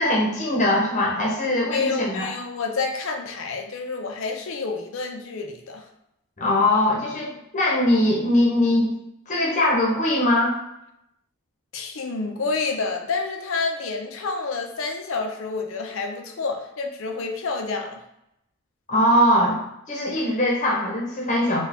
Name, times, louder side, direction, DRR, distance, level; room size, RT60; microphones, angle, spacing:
voice 1, 0.0-2.3 6.4-8.9 9.3-10.5 18.9-19.6 19.9-21.6, left 1 dB, 35° left, -3 dB, 0.8 m, -21 dB
voice 2, 1.7-5.9 11.7-18.0, left 4 dB, 65° left, 4 dB, 0.5 m, -29 dB
4.7 x 2.3 x 3.4 m, 0.82 s
head